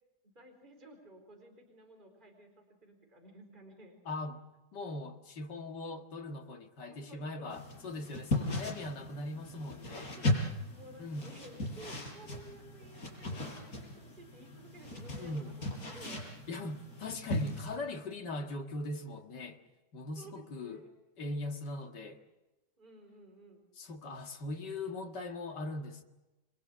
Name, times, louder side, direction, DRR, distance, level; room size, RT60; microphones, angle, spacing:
voice 1, 0.2-4.0 6.9-7.5 7.9-8.0 10.1-10.4 10.7-16.2 20.2-20.9 22.8-23.6, right 1 dB, 25° right, 4.4 m, -54 dB
voice 2, 4.1-4.4 4.7-10.1 11.0-11.3 15.2-15.5 16.5-19.6 19.9-20.8 21.2-22.2 23.7-26.0, left 2 dB, 85° left, 2.5 m, -40 dB
sound 1, 7.5-17.8, left 1 dB, 55° left, 5.8 m, -37 dB
30.0 x 22.5 x 7.4 m
omnidirectional pair, 1.8 m